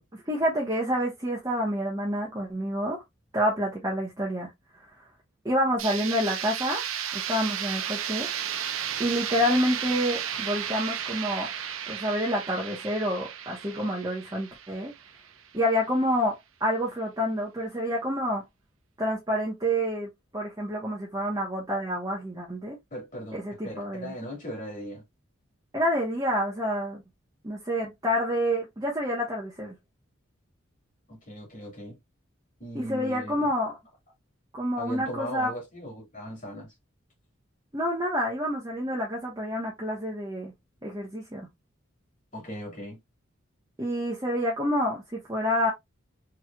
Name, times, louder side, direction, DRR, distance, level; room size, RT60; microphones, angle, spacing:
voice 1, 0.1-3.0 3.3-4.5 5.4-6.8 7.1-8.3 9.0-11.5 11.9-14.9 15.5-16.3 16.6-18.4 19.0-22.8 23.3-24.1 25.7-27.0 27.4-29.8 32.7-33.7 34.5-35.5 37.7-40.5 40.8-41.5 43.8-45.7, equal, 20° right, 1.1 m, -28 dB
sound 1, 5.8-15.6, right 9 dB, 85° right, 0.7 m, -34 dB
voice 2, 22.9-25.0 31.1-32.0 32.6-33.5 34.8-36.7 42.3-43.0, equal, 40° left, 2.7 m, -38 dB
4.5 x 3.3 x 2.4 m
head